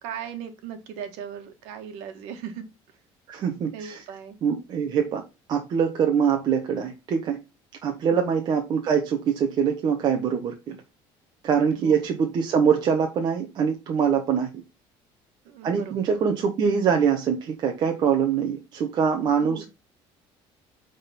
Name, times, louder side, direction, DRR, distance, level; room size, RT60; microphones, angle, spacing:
voice 1, 0.0-2.6 3.7-4.4 8.0-8.4 11.7-12.0 15.4-15.9 19.4-19.7, right 8 dB, 85° right, 1.6 m, -38 dB
voice 2, 3.3-4.0 4.4-5.2 5.5-7.4 7.8-10.8 11.4-14.5 15.6-19.7, right 7 dB, 45° right, 1.1 m, -24 dB
9.1 x 4.0 x 4.2 m
cardioid pair, 150°, 11 cm